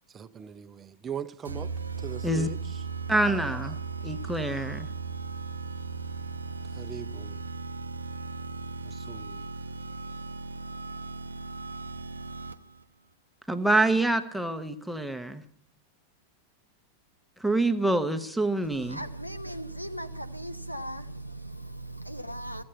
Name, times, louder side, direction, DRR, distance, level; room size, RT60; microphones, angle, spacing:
voice 1, 0.0-1.7 2.0-2.8 3.2-3.7 6.7-7.5 8.8-9.5, right 8 dB, 25° right, 0.5 m, -41 dB
sound 1, 1.5-12.8, right 4 dB, 75° right, 0.6 m, -37 dB
voice 2, 3.1-3.8 4.0-4.9 13.5-15.4 17.4-19.0, right 2 dB, ahead, 1.0 m, -26 dB
voice 3, 18.7-22.6, right 1 dB, 90° left, 0.7 m, -38 dB
15.0 x 7.8 x 9.9 m
figure-of-eight pair, 90°, 0 cm